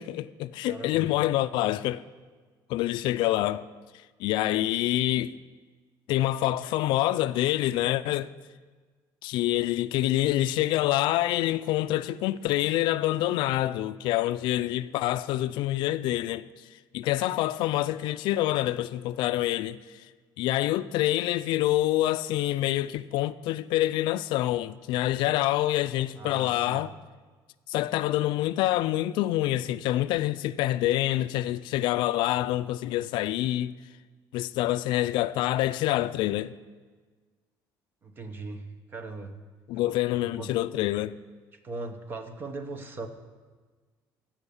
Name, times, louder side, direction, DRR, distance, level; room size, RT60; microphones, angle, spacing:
voice 1, 0.0-2.0 2.7-3.6 4.2-5.3 6.1-8.3 9.2-16.4 16.9-20.0 20.4-26.9 27.7-33.7 34.3-36.5 39.7-41.2, left 15 dB, 70° left, 0.3 m, -26 dB
voice 2, 0.7-1.1 26.2-26.8 38.0-39.4 40.2-40.6 41.6-43.1, right 3 dB, 25° right, 0.8 m, -39 dB
15.0 x 5.6 x 7.0 m
cardioid pair, 180°, 8 cm